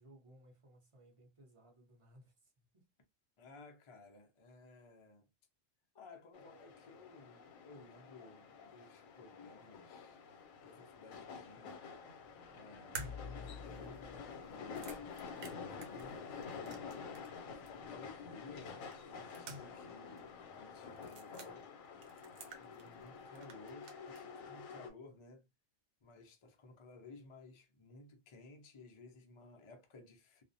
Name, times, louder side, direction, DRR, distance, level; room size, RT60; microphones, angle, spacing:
voice 1, 0.0-2.9, right 1 dB, 30° right, 0.6 m, -62 dB
voice 2, 3.4-5.3 5.9-10.2 10.6-11.9 12.5-15.3 15.5-16.9 17.4-21.6 22.3-25.5 26.0-30.4, left 3 dB, 50° left, 0.3 m, -57 dB
sound 1, 6.3-24.9, left 5 dB, 85° left, 1.0 m, -49 dB
sound 2, 12.9-17.4 17.7-17.8 18.9-19.9 20.2-20.3 21.0-21.5 22.0-23.1 23.3-24.2, right 1 dB, 70° right, 0.9 m, -50 dB
2.4 x 2.0 x 2.6 m
omnidirectional pair, 1.4 m